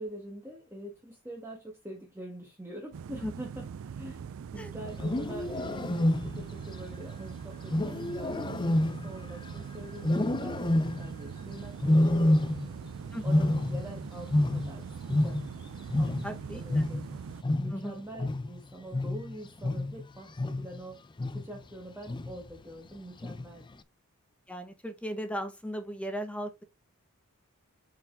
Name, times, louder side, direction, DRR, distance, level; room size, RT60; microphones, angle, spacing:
voice 1, 0.0-12.4 13.2-15.4 16.0-17.0 17.6-21.0 21.3-23.7, right 1 dB, 10° right, 1.5 m, -45 dB
sound 1, 2.9-17.4, right 6 dB, 65° right, 0.4 m, -42 dB
Wild animals, 4.9-6.6 7.7-9.6 10.0-11.2 11.8-12.9 13.1-15.6 15.9-20.8 21.2-21.6 22.1-22.5 23.2-23.7, left 1 dB, 20° left, 0.5 m, -28 dB
voice 2, 16.2-16.8 17.7-18.0 24.5-26.6, equal, 5° left, 1.0 m, -37 dB
7.3 x 4.8 x 3.4 m
head